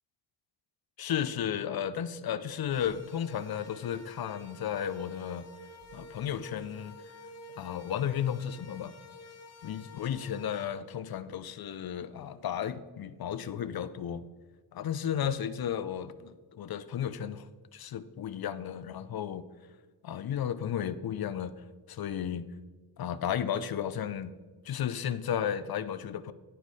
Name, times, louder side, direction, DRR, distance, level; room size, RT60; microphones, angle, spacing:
voice 1, 1.0-5.5 5.9-7.0 7.6-8.9 9.6-14.2 14.7-17.5 17.7-19.4 20.0-21.5 21.9-22.5 23.0-24.3 24.6-26.3, left 9 dB, 55° left, 13 dB, 0.5 m, -33 dB
sound 1, 2.7-10.7, left 2 dB, 35° left, 1.2 m, -51 dB
11.0 x 4.7 x 4.1 m, 1.3 s
wide cardioid pair, 145°, 43 cm